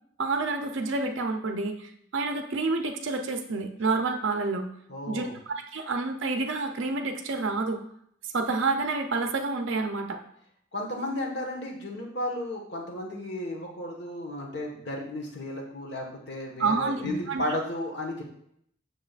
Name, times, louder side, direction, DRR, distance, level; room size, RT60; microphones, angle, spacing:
voice 1, 0.2-4.7 5.1-7.8 8.3-10.2 16.6-17.4, right 3 dB, 65° right, 5 dB, 0.6 m, -29 dB
voice 2, 4.9-5.3 10.7-18.2, left 1 dB, 55° left, 0 dB, 1.4 m, -34 dB
7.2 x 6.6 x 2.4 m, 0.70 s
head